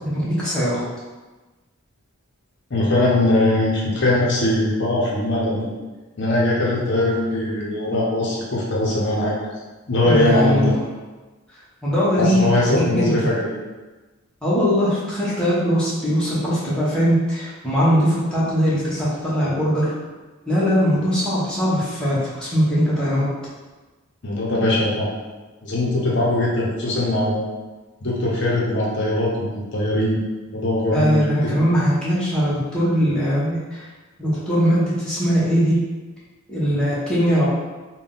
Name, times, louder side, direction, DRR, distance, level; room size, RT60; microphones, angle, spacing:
voice 1, 0.0-0.8 10.1-10.7 11.8-13.1 14.4-19.9 20.5-23.3 30.9-33.9 34.2-35.8 36.5-37.5, equal, 5° left, -10 dB, 0.9 m, -20 dB
voice 2, 2.7-5.7 6.2-9.4 9.9-10.7 12.2-13.5 24.2-25.1 25.6-27.4 28.0-30.2 30.5-31.5, left 1 dB, 55° left, -4 dB, 0.7 m, -21 dB
3.6 x 2.2 x 3.8 m, 1.2 s
head